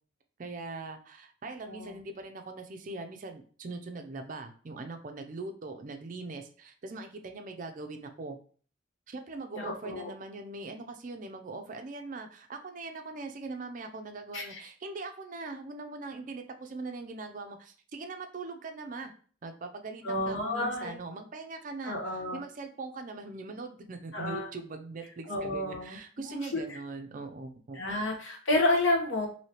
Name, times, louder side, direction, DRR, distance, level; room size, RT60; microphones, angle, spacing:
voice 1, 0.4-8.4 9.1-19.1 19.4-27.8, right 3 dB, 40° right, 6 dB, 0.4 m, -41 dB
voice 2, 9.6-10.1 14.3-14.6 20.0-20.9 21.8-22.4 24.1-24.5 25.3-26.0 26.2-26.6 27.7-29.3, left 2 dB, 75° left, 0 dB, 0.9 m, -30 dB
3.2 x 2.7 x 2.8 m, 0.43 s
head